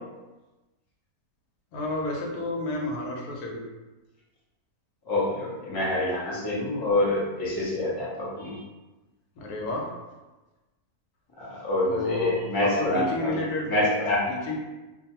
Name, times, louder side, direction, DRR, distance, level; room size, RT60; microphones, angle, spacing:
voice 1, 1.7-3.6 9.4-9.9 11.9-13.7 14.3-14.6, left 2 dB, 80° left, -1 dB, 1.1 m, -31 dB
voice 2, 5.1-8.6 11.4-13.3 13.7-14.2, left 1 dB, 30° left, -7 dB, 0.4 m, -26 dB
2.5 x 2.3 x 2.8 m, 1.1 s
omnidirectional pair, 1.6 m